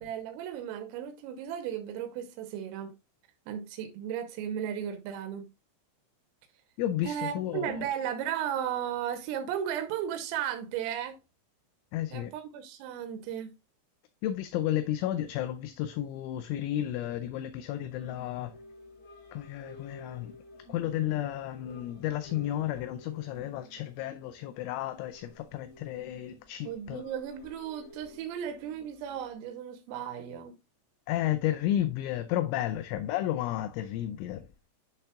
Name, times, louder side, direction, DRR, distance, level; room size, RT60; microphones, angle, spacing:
voice 1, 0.0-3.0 3.5-5.5 7.1-11.2 12.1-13.5 26.7-30.6, right 9 dB, 85° right, 3.5 m, -35 dB
voice 2, 6.8-7.8 11.9-12.3 14.2-18.5 19.3-20.4 20.7-27.0 31.1-34.5, left 12 dB, 85° left, 2.8 m, -32 dB
sound 1, 18.0-29.3, left 1 dB, 65° left, 4.8 m, -53 dB
10.5 x 5.5 x 2.3 m
omnidirectional pair, 5.9 m